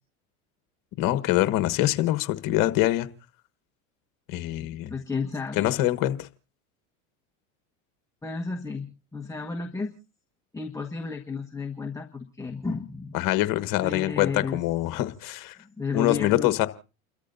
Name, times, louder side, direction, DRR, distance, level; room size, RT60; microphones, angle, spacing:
voice 1, 1.0-3.1 4.3-4.9 5.6-6.3 13.1-15.6 15.9-16.7, left 15 dB, 55° left, 1.4 m, -24 dB
voice 2, 4.6-5.7 8.2-9.9 10.5-13.2 13.8-14.6 15.6-16.5, left 4 dB, 10° left, 1.3 m, -33 dB
30.0 x 13.5 x 2.7 m
hypercardioid pair, 95°, 40 cm